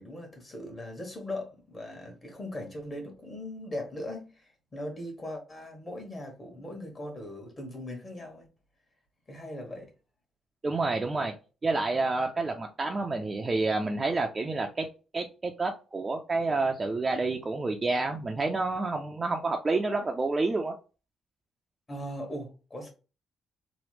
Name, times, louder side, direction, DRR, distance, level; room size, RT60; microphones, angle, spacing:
voice 1, 0.0-8.5 9.3-9.9 21.9-22.9, left 1 dB, 30° left, 1.2 m, -39 dB
voice 2, 10.6-11.3 11.6-14.9 15.1-20.7, right 3 dB, 30° right, 0.4 m, -29 dB
3.0 x 2.1 x 3.2 m
cardioid pair, 90°, 0 cm